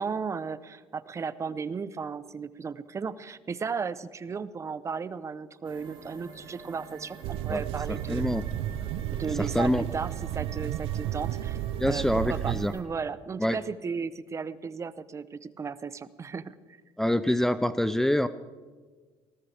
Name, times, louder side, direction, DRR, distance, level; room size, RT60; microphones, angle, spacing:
voice 1, 0.0-8.3 9.1-16.8, right 5 dB, 30° right, 16 dB, 0.8 m, -35 dB
sound 1, 5.6-12.8, right 5 dB, 55° right, 3.5 m, -47 dB
sound 2, 7.2-12.7, right 12 dB, 75° right, 0.6 m, -33 dB
voice 2, 7.9-8.4 9.3-9.8 11.8-12.7 13.4-13.6 17.0-18.3, left 1 dB, 5° left, 12 dB, 0.5 m, -26 dB
20.0 x 18.5 x 3.4 m, 1.4 s
supercardioid pair, 95°, 10 cm